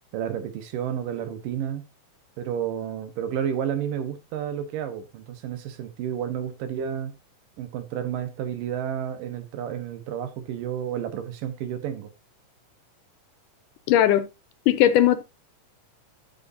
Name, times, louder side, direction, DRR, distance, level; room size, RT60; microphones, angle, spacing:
voice 1, 0.1-1.9 2.4-7.1 7.6-12.1, right 9 dB, 85° right, 2.9 m, -31 dB
voice 2, 13.9-14.2 14.7-15.2, left 12 dB, 80° left, 2.3 m, -18 dB
12.5 x 6.4 x 2.7 m
omnidirectional pair, 3.8 m